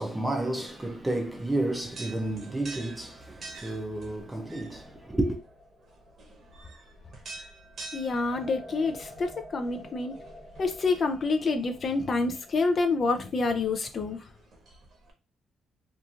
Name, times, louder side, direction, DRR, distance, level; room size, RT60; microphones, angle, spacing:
voice 1, 0.0-5.4, right 1 dB, 15° right, 0.5 m, -31 dB
sound 1, 0.7-15.1, right 2 dB, 55° right, 0.9 m, -48 dB
sound 2, 4.3-7.3 8.3-12.6, left 1 dB, 10° left, 1.2 m, -49 dB
voice 2, 7.9-10.2 10.6-14.3, left 3 dB, 45° left, 0.4 m, -27 dB
2.8 x 2.5 x 2.4 m
cardioid pair, 90°, 0 cm